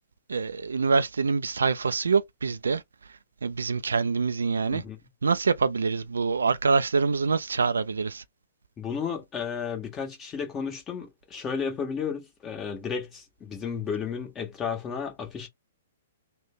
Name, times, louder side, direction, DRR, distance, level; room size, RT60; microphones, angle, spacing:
voice 1, 0.3-2.8 3.4-4.8 5.2-8.2, right 4 dB, 70° right, 0.3 m, -25 dB
voice 2, 8.8-15.5, left 6 dB, 20° left, 1.5 m, -33 dB
3.3 x 2.2 x 3.7 m
figure-of-eight pair, 115°, 0 cm